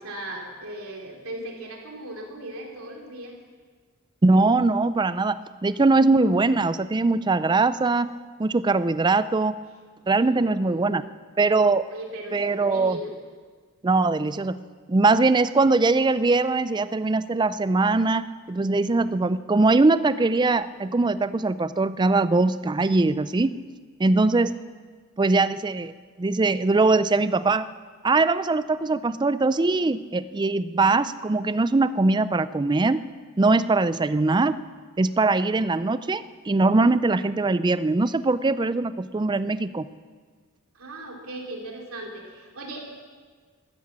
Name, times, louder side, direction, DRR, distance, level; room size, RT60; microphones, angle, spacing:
voice 1, 0.0-3.4 10.1-11.1 11.9-13.1 40.7-42.8, right 1 dB, 75° right, 1 dB, 3.0 m, -38 dB
voice 2, 4.2-8.1 8.4-9.5 10.1-11.0 11.4-11.8 12.3-13.0 13.8-14.6 14.9-23.5 24.0-24.5 25.2-25.9 26.2-27.7 28.0-33.0 33.4-34.5 35.0-39.9, right 3 dB, 20° right, 14 dB, 0.4 m, -21 dB
13.0 x 13.0 x 7.4 m, 1.5 s
head